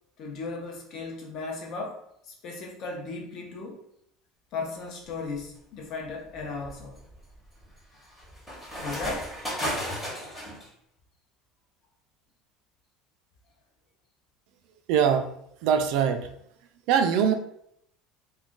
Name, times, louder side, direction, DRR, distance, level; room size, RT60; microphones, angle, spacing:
voice 1, 0.2-3.8 4.5-7.0 8.8-9.3, left 3 dB, 40° left, 0 dB, 0.6 m, -36 dB
sound 1, 5.1-5.5 6.0-10.7, equal, 5° left, 0.9 m, -35 dB
voice 2, 14.9-15.3 15.6-16.3 16.9-17.3, right 8 dB, 60° right, 7 dB, 0.3 m, -22 dB
2.4 x 2.2 x 3.7 m, 0.73 s
cardioid pair, 170°, 0 cm